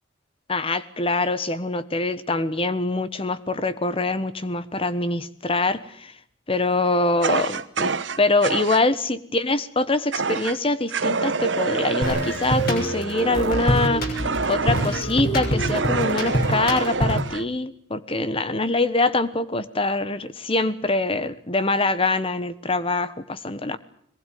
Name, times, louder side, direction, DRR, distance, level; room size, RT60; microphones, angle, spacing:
voice 1, 0.5-6.1 6.5-23.8, left 2 dB, 30° left, 14 dB, 1.2 m, -24 dB
Fire, 7.2-8.8 10.1-10.6 10.9-15.1 15.6-17.4, right 4 dB, 65° right, 1.1 m, -27 dB
sound 1, 12.0-17.4, equal, 50° left, 6.5 m, -25 dB
22.5 x 19.5 x 9.4 m, 0.64 s
head